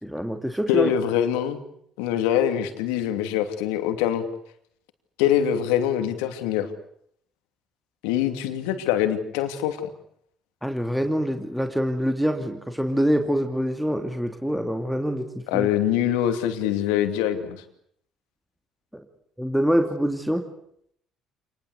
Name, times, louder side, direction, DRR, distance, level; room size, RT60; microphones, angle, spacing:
voice 1, 0.0-0.9 10.6-15.7 19.4-20.4, equal, ahead, 5 dB, 2.6 m, -25 dB
voice 2, 0.7-1.6 2.0-4.2 5.2-6.7 8.0-9.8 15.5-17.6, left 10 dB, 85° left, 8 dB, 2.8 m, -24 dB
27.5 x 20.5 x 8.2 m, 0.69 s
supercardioid pair, 70°, 0 cm